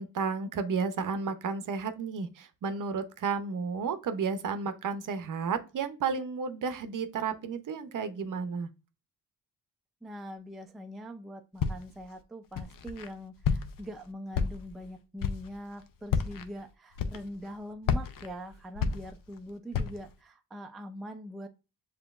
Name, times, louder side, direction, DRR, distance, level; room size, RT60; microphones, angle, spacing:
voice 1, 0.0-8.7, right 5 dB, 55° right, 10 dB, 0.6 m, -32 dB
voice 2, 10.0-21.5, equal, ahead, 5 dB, 0.3 m, -43 dB
Walk footsteps, 11.6-12.0 12.6-13.1 13.4-13.9 14.3-14.8 15.2-15.5 16.0-16.5 17.0-17.5 17.8-19.4 19.7-20.1, left 6 dB, 60° left, 0.6 m, -31 dB
7.2 x 2.8 x 2.3 m, 0.30 s
cardioid pair, 130°, 38 cm